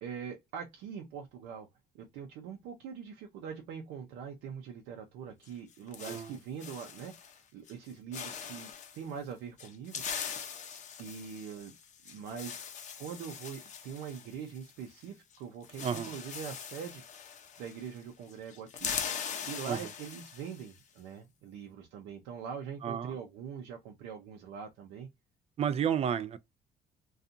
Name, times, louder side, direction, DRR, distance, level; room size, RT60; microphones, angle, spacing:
voice 1, 0.0-1.7 1.9-10.0 11.0-11.7 12.0-12.6 13.0-17.0 17.6-18.9 19.4-25.1, right 7 dB, 85° right, 0.5 m, -43 dB
sound 1, 5.4-7.4 7.7-9.0 9.6-15.0 15.3-15.4 15.6-18.0 18.3-20.7, left 7 dB, 45° left, 0.6 m, -41 dB
voice 2, 22.8-23.1 25.6-26.4, right 8 dB, 40° right, 0.4 m, -31 dB
2.6 x 2.3 x 2.5 m
cardioid pair, 110°, 17 cm